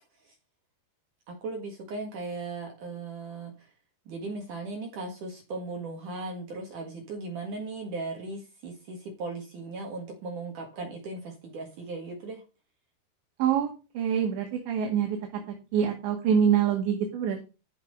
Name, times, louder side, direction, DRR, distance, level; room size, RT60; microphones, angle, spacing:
voice 1, 1.3-3.7 4.1-12.4, right 3 dB, 55° right, 2 dB, 2.8 m, -37 dB
voice 2, 13.4-15.2 15.7-17.4, right 8 dB, 75° right, 2 dB, 4.3 m, -25 dB
15.0 x 5.9 x 5.3 m, 0.31 s
omnidirectional pair, 5.3 m